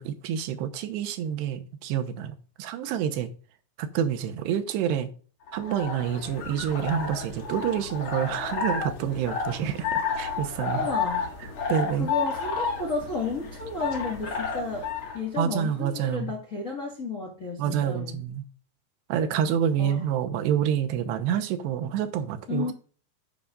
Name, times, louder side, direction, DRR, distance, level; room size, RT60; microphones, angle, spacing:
voice 1, 0.0-3.3 3.8-5.1 5.5-10.9 11.7-12.1 15.4-16.3 17.6-18.4 19.1-22.7, right 9 dB, 85° right, 3.0 m, -28 dB
sound 1, 5.5-15.2, left 5 dB, 50° left, 1.7 m, -31 dB
voice 2, 10.7-11.3 11.6-14.9 15.1-18.2 19.8-20.0 22.5-22.7, left 3 dB, 90° left, 0.7 m, -32 dB
10.5 x 8.5 x 2.5 m
omnidirectional pair, 4.8 m